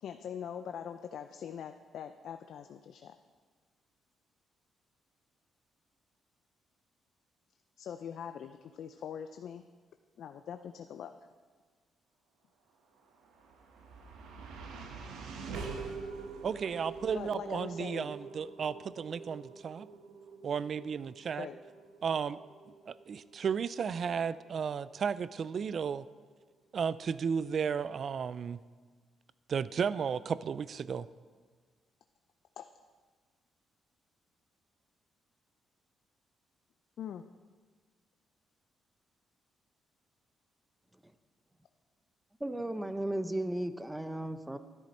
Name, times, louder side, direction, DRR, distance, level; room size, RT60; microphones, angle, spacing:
voice 1, 0.0-3.1 7.8-9.6 10.2-11.1 17.1-18.1 21.4-21.6 32.6-32.7 37.0-37.2, left 8 dB, 70° left, 8 dB, 0.5 m, -42 dB
sound 1, 13.0-25.3, right 4 dB, 85° right, 1.2 m, -46 dB
voice 2, 16.4-19.9 20.4-21.5 22.0-22.4 22.9-26.1 26.7-28.6 29.5-31.1, right 6 dB, 50° right, 17 dB, 0.4 m, -34 dB
voice 3, 42.4-44.6, right 1 dB, 10° right, 11 dB, 0.6 m, -35 dB
13.0 x 10.5 x 4.3 m, 1.5 s
cardioid pair, 90°, 0 cm